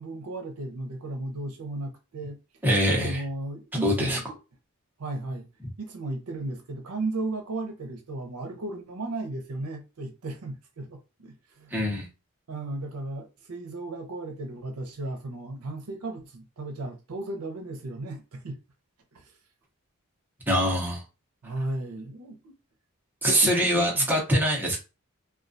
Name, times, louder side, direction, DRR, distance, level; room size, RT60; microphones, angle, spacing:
voice 1, 0.0-2.4 3.0-4.2 5.0-5.5 5.8-11.7 12.5-18.6 19.1-19.3 21.4-22.5 23.4-24.1, right 2 dB, 85° right, 0.6 m, -35 dB
voice 2, 2.6-3.2 3.8-4.2 11.7-12.1 20.5-21.0 23.2-24.8, equal, 10° right, 0.7 m, -23 dB
2.2 x 2.2 x 2.5 m
head